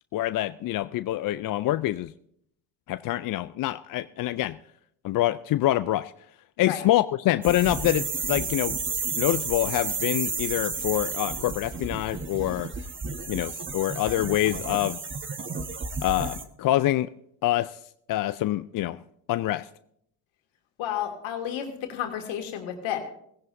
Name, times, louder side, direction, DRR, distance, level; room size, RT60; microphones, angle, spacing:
voice 1, 0.1-2.1 2.9-4.6 5.0-6.1 6.6-8.8 9.2-12.7 13.3-15.0 16.0-17.1 17.4-17.8 18.1-19.0 19.3-19.7, left 15 dB, 45° left, 13 dB, 0.5 m, -26 dB
sound 1, 7.4-16.4, right 4 dB, 25° right, 1.2 m, -32 dB
voice 2, 20.8-23.0, left 10 dB, 65° left, 4 dB, 2.4 m, -31 dB
17.5 x 16.0 x 2.6 m, 0.71 s
hypercardioid pair, 55°, 49 cm